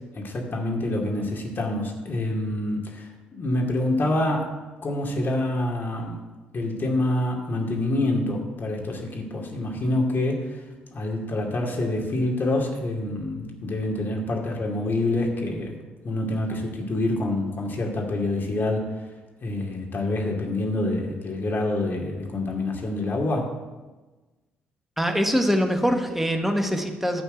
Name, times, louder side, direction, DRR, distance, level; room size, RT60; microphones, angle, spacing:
voice 1, 0.1-4.6 4.8-6.2 6.5-10.6 10.9-15.8 16.0-18.9 19.4-23.5, left 1 dB, 45° left, 0 dB, 2.5 m, -26 dB
voice 2, 25.0-27.2, equal, 5° right, 4 dB, 1.6 m, -23 dB
11.0 x 4.5 x 7.9 m, 1.2 s
hypercardioid pair, 50°, 5 cm